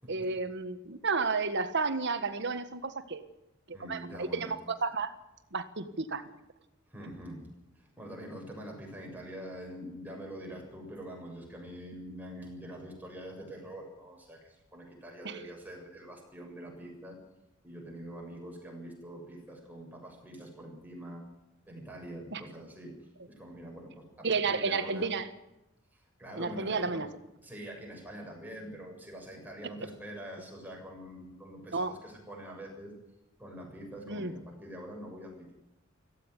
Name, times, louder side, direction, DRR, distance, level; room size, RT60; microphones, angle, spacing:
voice 1, 0.1-3.2 3.7-5.1 5.5-6.2 15.2-15.4 22.3-22.4 24.2-25.3 26.4-27.1 31.7-31.9 34.1-34.3, right 4 dB, 60° right, 11 dB, 1.5 m, -32 dB
voice 2, 3.7-4.5 6.9-7.4 7.8-17.2 17.6-21.2 21.6-22.9 23.3-25.1 25.9-27.0 27.4-32.9 33.4-35.5, right 1 dB, 10° right, 0 dB, 7.3 m, -45 dB
17.5 x 15.5 x 9.8 m, 0.93 s
head